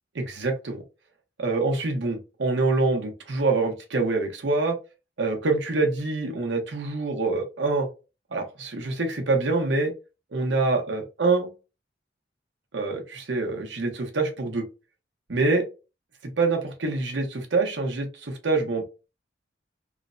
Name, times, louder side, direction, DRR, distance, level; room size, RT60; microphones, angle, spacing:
voice 1, 0.1-0.8 1.4-4.8 5.2-7.9 8.3-9.9 10.3-11.5 12.7-14.7 15.3-15.6 16.4-18.8, right 3 dB, 75° right, 3 dB, 0.8 m, -25 dB
3.1 x 2.1 x 2.5 m, 0.30 s
head